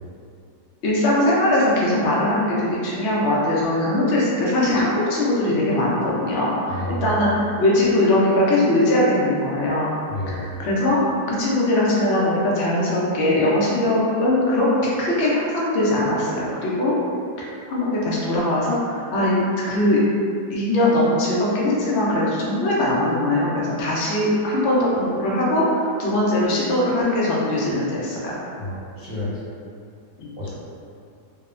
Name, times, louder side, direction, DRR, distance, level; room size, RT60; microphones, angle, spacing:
voice 1, 0.8-6.7 7.0-9.9 10.4-11.0 11.3-16.9 17.7-19.4 19.7-20.0 20.5-25.6 26.0-28.4 30.2-30.3, left 1 dB, 80° left, -6 dB, 0.5 m, -21 dB
voice 2, 6.7-7.3 10.1-10.6 28.6-29.3 30.4-30.5, equal, 45° right, -15 dB, 0.9 m, -30 dB
2.9 x 2.0 x 2.4 m, 2.4 s
omnidirectional pair, 1.8 m